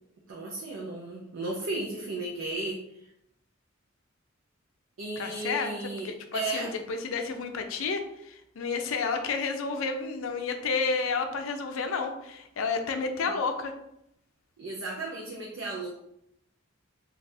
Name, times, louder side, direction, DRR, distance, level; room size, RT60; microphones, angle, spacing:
voice 1, 0.3-2.8 5.0-6.7 14.6-15.9, right 2 dB, 85° right, -2 dB, 0.5 m, -34 dB
voice 2, 5.2-5.7 6.0-13.7, left 4 dB, 90° left, 6 dB, 0.4 m, -31 dB
3.3 x 2.4 x 2.6 m, 0.79 s
head